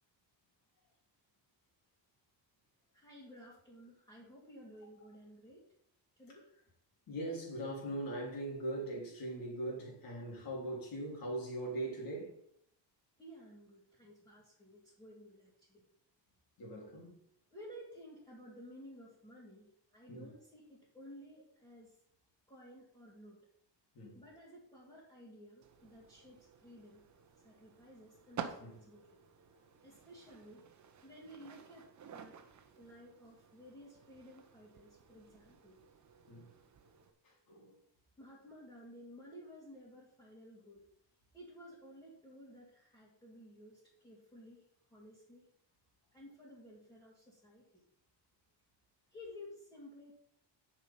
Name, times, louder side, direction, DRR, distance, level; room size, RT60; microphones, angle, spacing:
voice 1, 2.9-5.7 6.2-6.5 13.2-15.8 17.5-21.9 22.5-23.4 24.1-27.0 27.4-29.1 29.8-30.6 31.0-31.9 32.1-32.4 32.8-35.8 38.2-40.8 41.3-44.7 44.9-45.5 46.1-47.8 49.1-50.1, equal, 10° left, 2.9 m, -54 dB
voice 2, 7.1-12.4 16.6-17.2 20.1-20.3 24.0-24.2 28.6-28.8 36.3-36.5 37.2-37.8, right 1 dB, 50° left, 3.7 m, -41 dB
sound 1, 25.6-37.1, right 7 dB, 40° right, 1.0 m, -52 dB
10.0 x 6.0 x 5.6 m
cardioid pair, 170°, 44 cm